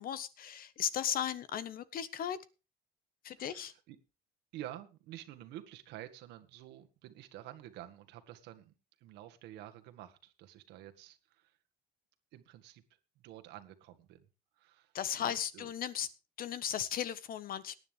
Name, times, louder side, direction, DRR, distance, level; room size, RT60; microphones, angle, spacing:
voice 1, 0.0-2.4 3.2-3.7 14.9-16.1 16.4-17.7, left 9 dB, 60° left, 15 dB, 1.3 m, -36 dB
voice 2, 3.4-4.0 4.5-11.6 12.3-12.8 13.2-14.3 14.6-15.7, right 13 dB, 90° right, 8 dB, 1.8 m, -50 dB
18.5 x 10.0 x 3.4 m, 0.30 s
cardioid pair, 110°, 17 cm